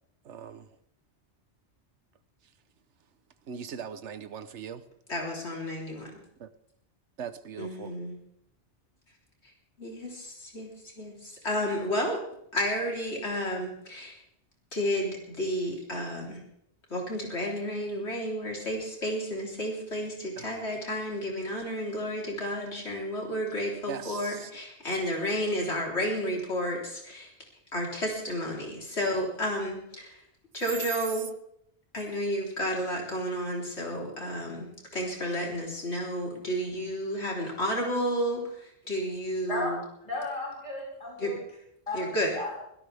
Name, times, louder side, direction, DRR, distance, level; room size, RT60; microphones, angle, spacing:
voice 1, 0.2-0.7 3.5-4.8 6.4-6.5 7.2-7.9 20.4-20.5 23.9-24.5, right 7 dB, 80° right, 12 dB, 1.2 m, -40 dB
voice 2, 5.1-6.1 7.6-8.2 9.8-12.2 12.5-14.2 14.7-16.4 16.9-27.3 27.7-30.2 30.5-31.3 31.9-39.8 41.2-41.3 41.9-42.3, equal, 70° left, -2 dB, 4.0 m, -31 dB
voice 3, 39.5-41.4 41.9-42.6, left 2 dB, 30° left, -4 dB, 5.6 m, -34 dB
23.0 x 17.0 x 3.5 m, 0.75 s
omnidirectional pair, 1.2 m